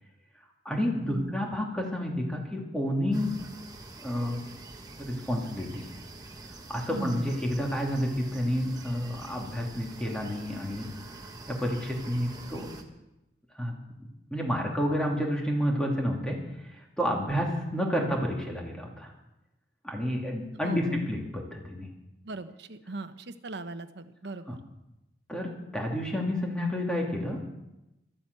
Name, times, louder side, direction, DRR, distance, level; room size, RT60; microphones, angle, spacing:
voice 1, 0.6-3.3 4.0-4.4 5.0-5.8 6.7-10.9 11.5-12.7 13.5-13.8 14.3-16.4 17.0-19.1 19.8-21.9 24.5-24.6 25.3-27.4, equal, 5° left, 0 dB, 2.5 m, -30 dB
sound 1, 3.1-12.8, right 2 dB, 20° right, 1.4 m, -46 dB
voice 2, 6.9-7.3 20.6-21.0 22.2-24.6, right 2 dB, 65° right, 10 dB, 0.9 m, -38 dB
13.0 x 10.0 x 8.1 m, 0.93 s
head